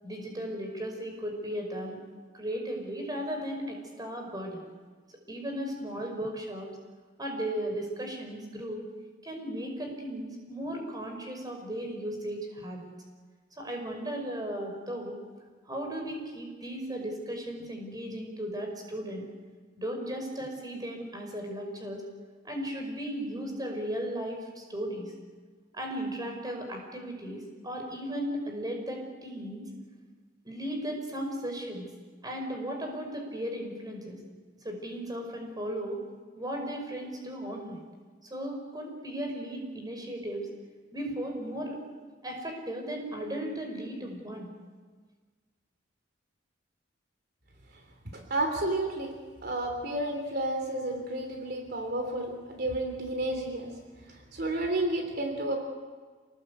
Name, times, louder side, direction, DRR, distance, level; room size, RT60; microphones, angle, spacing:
voice 1, 0.0-2.0 2.3-4.6 5.3-6.7 7.2-8.8 9.2-12.9 13.6-15.2 15.7-19.3 19.8-22.0 22.4-25.1 25.7-29.7 30.4-31.9 32.2-34.2 34.6-36.0 36.3-37.8 38.2-40.5 40.9-41.8 42.2-44.5, equal, 20° right, 2 dB, 5.4 m, -36 dB
voice 2, 48.1-49.1 49.4-53.7 54.1-55.6, right 1 dB, 60° right, 4 dB, 3.4 m, -31 dB
28.0 x 19.5 x 8.4 m, 1.5 s
head